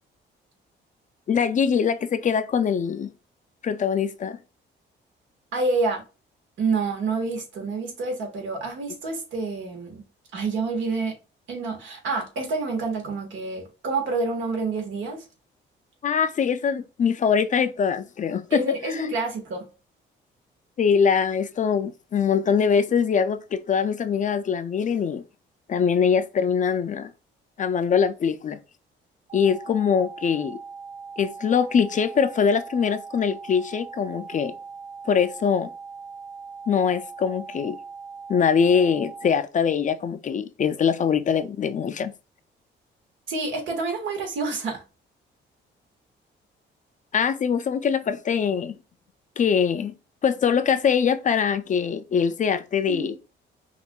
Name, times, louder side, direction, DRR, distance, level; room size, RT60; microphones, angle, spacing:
voice 1, 1.3-3.1 3.6-4.4 16.0-18.6 18.9-19.0 20.8-25.2 25.7-27.1 27.6-28.6 29.3-30.6 31.2-34.5 35.1-35.7 36.7-37.8 38.3-42.1 47.1-48.8 49.4-49.9 50.2-53.1, left 7 dB, 40° left, 0.4 m, -23 dB
voice 2, 5.5-6.0 6.6-10.0 10.3-11.1 11.5-15.3 18.5-19.6 43.3-44.8 52.9-53.1, right 3 dB, 80° right, 1.5 m, -28 dB
sound 1, 29.3-39.3, right 5 dB, 35° right, 2.2 m, -40 dB
5.4 x 2.5 x 2.2 m
cardioid pair, 90°, 20 cm